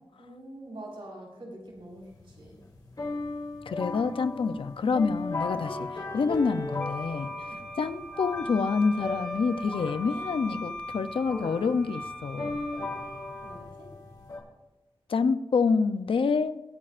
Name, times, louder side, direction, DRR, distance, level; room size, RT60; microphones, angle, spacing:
voice 1, 0.2-2.6 7.5-7.6 13.4-13.9, right 1 dB, 70° right, -2 dB, 4.5 m, -45 dB
sound 1, 1.8-14.4, left 2 dB, 45° left, 3.3 m, -37 dB
voice 2, 3.7-5.9 6.1-7.3 7.8-12.6 15.1-16.6, left 5 dB, 70° left, 11 dB, 0.5 m, -27 dB
Wind instrument woodwind instrument, 6.8-13.5, equal, 15° left, 1.4 m, -40 dB
24.5 x 8.7 x 2.5 m, 1.1 s
wide cardioid pair, 125°, 9 cm